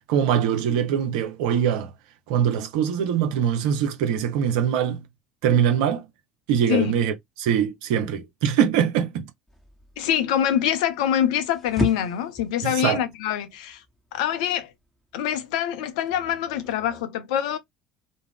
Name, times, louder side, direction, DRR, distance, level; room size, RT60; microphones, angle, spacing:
voice 1, 0.1-1.9 2.3-5.0 5.4-6.1 6.5-9.3 12.6-13.0, right 8 dB, 60° right, 0.5 m, -23 dB
sound 1, 9.5-17.0, equal, 5° left, 1.0 m, -37 dB
voice 2, 10.0-13.8 14.1-14.7 15.1-17.6, left 10 dB, 65° left, 0.5 m, -25 dB
2.4 x 2.0 x 3.3 m
figure-of-eight pair, 60°, 4 cm